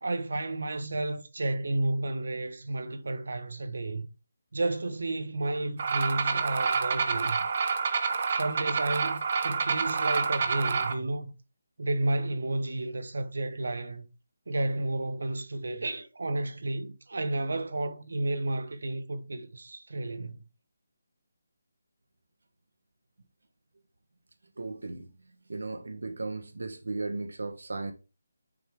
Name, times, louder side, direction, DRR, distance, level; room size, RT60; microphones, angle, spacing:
voice 1, 0.0-4.1 4.5-7.4 8.3-11.3 11.8-14.1 14.5-20.4, right 2 dB, 70° right, 1.3 m, -32 dB
sound 1, 5.8-10.9, right 5 dB, 30° right, 0.8 m, -28 dB
voice 2, 24.6-25.1 25.5-27.9, right 3 dB, 85° right, 1.2 m, -36 dB
10.0 x 4.7 x 3.7 m
hypercardioid pair, 175°, 0 cm